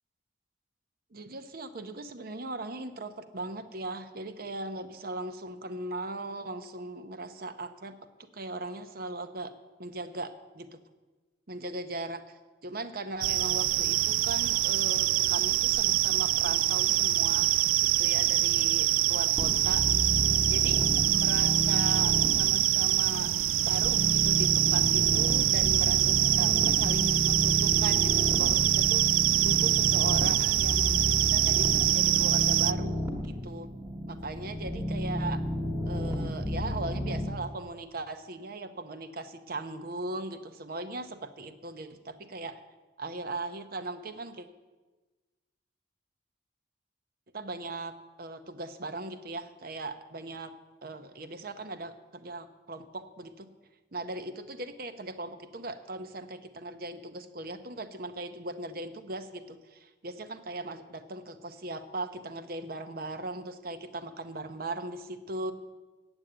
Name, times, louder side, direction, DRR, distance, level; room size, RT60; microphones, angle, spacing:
voice 1, 1.1-9.5 9.8-10.8 11.5-17.5 18.0-19.9 20.5-20.8 21.1-23.3 23.6-29.1 29.4-33.7 34.1-35.4 35.9-42.6 43.0-44.5 47.3-50.5 50.8-53.5 53.9-65.5, right 2 dB, 50° right, 10 dB, 0.7 m, -38 dB
sound 1, 13.2-32.7, right 15 dB, 90° right, 0.3 m, -25 dB
sound 2, 19.4-37.3, left 1 dB, 20° right, 1.3 m, -32 dB
8.9 x 8.9 x 7.9 m, 1.2 s
head